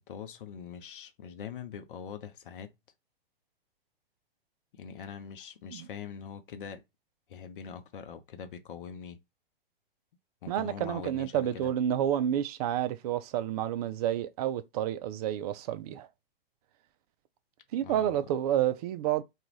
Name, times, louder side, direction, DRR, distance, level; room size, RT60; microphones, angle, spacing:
voice 1, 0.0-2.7 4.7-6.8 7.3-9.2 10.4-11.7 17.7-18.2, left 7 dB, 60° left, 0.7 m, -43 dB
voice 2, 10.5-16.1 17.7-19.2, right 11 dB, 40° right, 0.4 m, -29 dB
2.5 x 2.4 x 3.0 m
hypercardioid pair, 115°, 29 cm